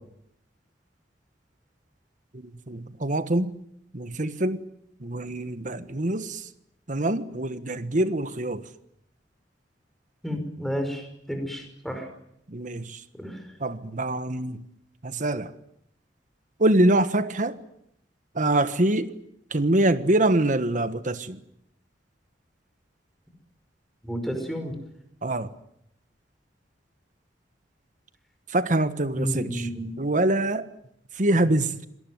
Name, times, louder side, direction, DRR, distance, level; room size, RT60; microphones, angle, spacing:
voice 1, 2.3-3.5 3.9-4.6 5.0-6.4 6.9-8.6 12.5-13.0 13.6-14.6 15.0-15.5 16.6-17.6 18.3-19.1 19.5-21.4 25.2-25.5 28.5-29.7 30.0-30.7 31.2-31.7, right 1 dB, 45° right, 1.4 m, -24 dB
voice 2, 10.2-12.1 13.2-13.4 24.0-24.7 29.1-29.9, equal, ahead, 5.4 m, -31 dB
26.0 x 19.0 x 9.4 m
head